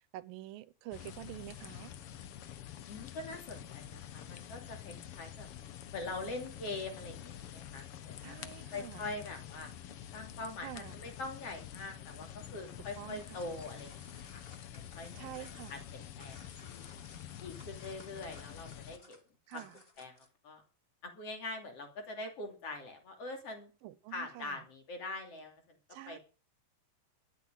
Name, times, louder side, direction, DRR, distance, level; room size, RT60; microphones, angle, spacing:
voice 1, 0.1-1.9 8.2-9.1 10.6-11.0 13.0-13.5 15.1-15.8 19.5-19.8 23.8-24.7 25.9-26.2, right 15 dB, 85° right, 2.6 m, -47 dB
sound 1, 0.9-19.0, left 10 dB, 75° left, 1.3 m, -48 dB
voice 2, 2.9-5.5 5.9-8.4 8.7-9.7 10.1-14.4 14.9-16.8 17.4-19.2 19.5-19.6 20.0-20.6 21.0-23.7 24.1-25.6 26.1-26.2, left 2 dB, 45° left, 3.6 m, -43 dB
sound 2, 13.2-20.4, left 3 dB, 30° left, 1.1 m, -59 dB
12.5 x 8.8 x 8.9 m
omnidirectional pair, 4.0 m